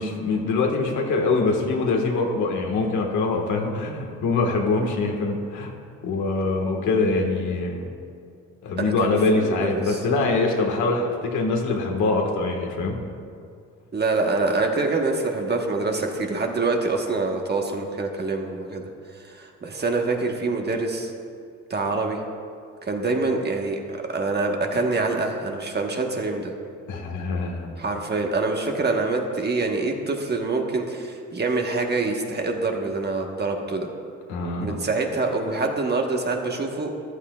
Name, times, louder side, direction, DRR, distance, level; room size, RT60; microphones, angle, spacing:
voice 1, 0.0-5.7 6.0-7.8 8.6-13.0 26.9-27.7 34.3-34.8, left 3 dB, 75° left, 1 dB, 1.6 m, -24 dB
voice 2, 8.8-10.0 13.9-18.8 19.2-21.1 21.7-22.2 22.8-26.5 27.8-33.9 34.6-36.9, right 3 dB, 35° right, 2 dB, 1.3 m, -25 dB
14.0 x 11.5 x 2.4 m, 2.3 s
cardioid pair, 90°, 30 cm